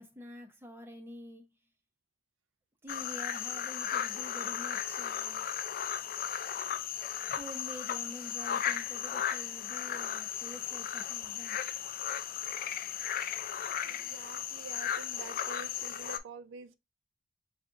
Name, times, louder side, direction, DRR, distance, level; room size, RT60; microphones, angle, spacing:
voice 1, 0.0-1.5 2.8-5.5 7.3-11.6, equal, 10° right, 0.7 m, -47 dB
sound 1, 2.9-16.2, left 9 dB, 50° left, 0.4 m, -36 dB
voice 2, 13.8-16.8, right 5 dB, 80° right, 0.4 m, -48 dB
5.9 x 2.4 x 2.5 m
head